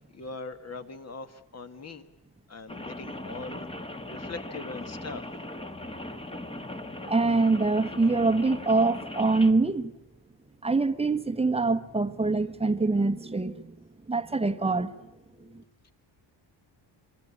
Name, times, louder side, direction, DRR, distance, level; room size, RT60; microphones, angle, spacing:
voice 1, 0.1-2.1 2.5-3.7 4.1-5.3, left 3 dB, 35° left, 1.9 m, -41 dB
Rain, 2.7-9.5, left 1 dB, 10° left, 1.6 m, -39 dB
voice 2, 7.1-9.9 10.6-13.8 14.1-15.0 15.3-15.6, right 3 dB, 15° right, 1.2 m, -25 dB
27.0 x 23.5 x 8.6 m
cardioid pair, 135°, 45 cm